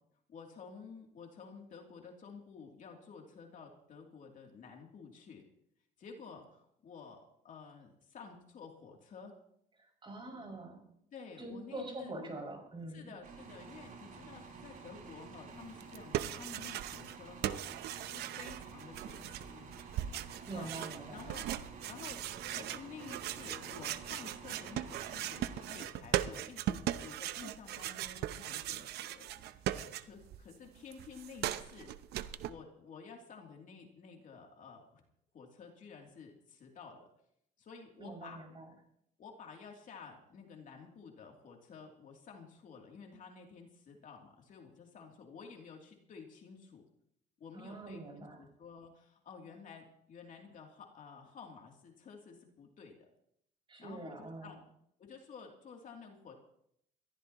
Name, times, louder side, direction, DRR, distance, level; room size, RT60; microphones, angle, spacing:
voice 1, 0.3-5.4 6.0-9.3 11.1-12.4 12.9-17.8 18.1-19.7 20.5-20.7 21.1-21.5 21.8-22.2 22.5-29.7 30.0-31.9 32.4-35.0 35.3-37.1 37.6-38.4 39.2-46.8 47.4-53.1 53.8-54.6 55.0-56.3, left 5 dB, 50° left, 1 dB, 2.9 m, -52 dB
voice 2, 9.8-10.8 11.4-13.1 20.5-21.3 38.0-38.7 47.5-48.4 53.7-54.6, right 2 dB, 30° right, 0 dB, 5.9 m, -44 dB
sound 1, 13.2-26.2, right 5 dB, 55° right, 5.7 m, -51 dB
sound 2, 15.8-17.2 17.4-30.4 30.7-32.5, right 12 dB, 75° right, 0.8 m, -39 dB
22.0 x 14.5 x 3.0 m, 0.72 s
cardioid pair, 110°, 17 cm